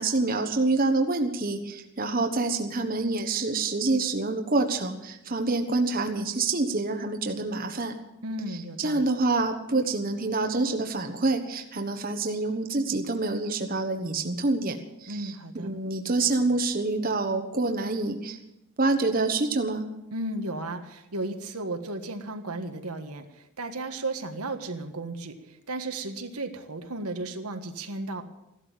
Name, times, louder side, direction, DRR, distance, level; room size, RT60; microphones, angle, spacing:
voice 1, 0.0-7.9 8.8-15.3 15.6-18.4 18.8-19.8, right 3 dB, 40° right, 5 dB, 1.2 m, -27 dB
voice 2, 8.2-9.1 15.1-15.7 20.1-28.2, right 2 dB, 90° right, 6 dB, 1.6 m, -34 dB
15.5 x 12.0 x 7.4 m, 0.89 s
head